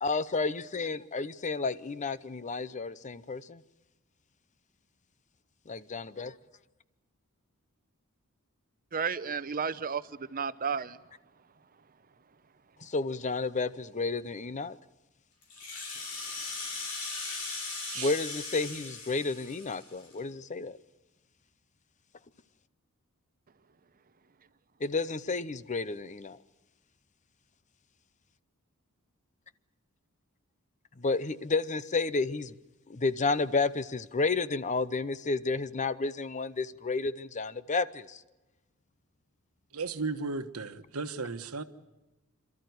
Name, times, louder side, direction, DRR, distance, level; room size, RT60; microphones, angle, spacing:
voice 1, 0.0-3.6 5.7-6.3 12.8-14.8 18.0-20.8 24.8-26.4 31.0-32.5 32.9-38.2, left 3 dB, 35° left, 0.7 m, -31 dB
voice 2, 8.9-11.0, right 6 dB, 40° right, 0.8 m, -32 dB
Rattle (instrument), 15.4-20.2, left 3 dB, 85° left, 5.7 m, -39 dB
voice 3, 17.0-17.4 17.9-18.1 39.7-41.6, right 4 dB, 80° right, 1.3 m, -36 dB
28.0 x 13.5 x 9.4 m
head